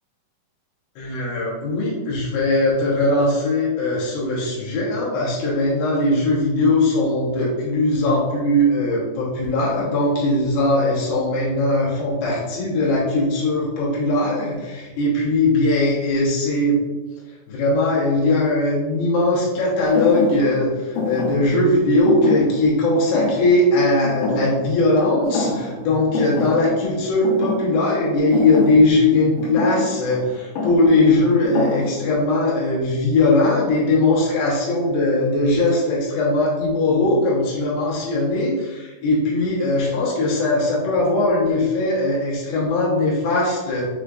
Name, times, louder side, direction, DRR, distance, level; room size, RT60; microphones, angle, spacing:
voice 1, 1.0-16.8 17.5-43.9, left 2 dB, 70° left, -6 dB, 2.8 m, -20 dB
Thump thud, 19.9-25.0 25.2-25.9 26.1-32.3, left 3 dB, 85° left, 3.0 m, -28 dB
6.4 x 3.2 x 2.4 m, 1.2 s
omnidirectional pair, 4.7 m